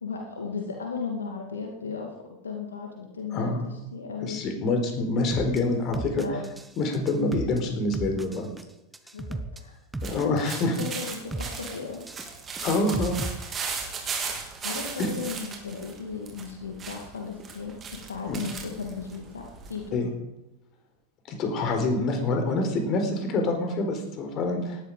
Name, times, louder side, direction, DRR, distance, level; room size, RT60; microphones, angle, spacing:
voice 1, 0.0-4.4 6.2-6.5 9.1-9.8 10.6-12.0 14.0-14.1 14.6-20.0 24.5-24.6, left 5 dB, 80° left, 1 dB, 2.4 m, -36 dB
voice 2, 3.3-3.7 4.2-6.2 6.8-8.5 10.0-10.7 12.6-13.3 15.0-15.1 18.3-18.4 19.9-20.1 21.3-24.8, left 2 dB, 40° left, 4 dB, 4.5 m, -26 dB
sound 1, 5.3-5.6 5.9-6.7 6.9-7.6 7.9-8.6 8.9-9.6 9.9-10.7 10.9-11.6 11.9-13.3, right 2 dB, 10° right, 1.4 m, -34 dB
walk autumn leaves, 10.0-19.9, right 5 dB, 25° right, 3.9 m, -37 dB
18.5 x 12.5 x 5.0 m, 0.94 s
figure-of-eight pair, 85°, 0 cm